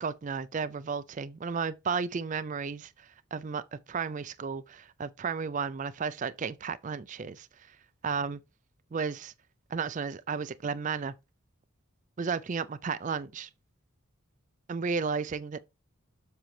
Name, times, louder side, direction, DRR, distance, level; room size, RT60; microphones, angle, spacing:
voice 1, 0.0-7.7 8.0-8.4 8.9-9.3 9.7-11.1 12.2-13.5 14.7-15.6, right 5 dB, 35° right, 0.3 m, -33 dB
7.5 x 6.3 x 3.2 m
head